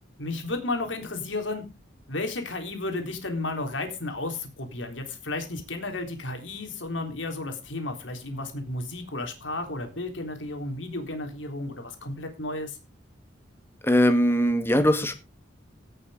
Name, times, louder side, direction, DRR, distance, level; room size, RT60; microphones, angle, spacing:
voice 1, 0.2-1.7 2.1-12.8, left 2 dB, 90° left, 3.6 m, -33 dB
voice 2, 13.8-15.1, equal, 15° left, 2.0 m, -21 dB
17.0 x 7.0 x 5.0 m
head